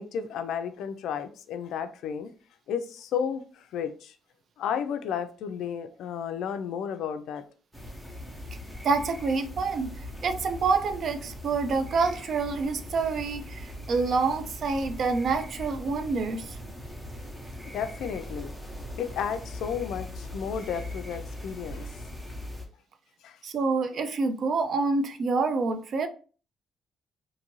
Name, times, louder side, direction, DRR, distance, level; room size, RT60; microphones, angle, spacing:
voice 1, 0.0-2.3 2.7-4.1 4.6-7.4 17.7-18.5 19.0-21.9 23.2-23.4, left 7 dB, 80° left, 0.3 m, -33 dB
sound 1, 7.7-22.7, left 1 dB, 5° right, 0.8 m, -40 dB
voice 2, 8.8-16.6 23.4-26.1, right 4 dB, 60° right, 0.4 m, -27 dB
2.6 x 2.6 x 2.9 m
cardioid pair, 90°, 0 cm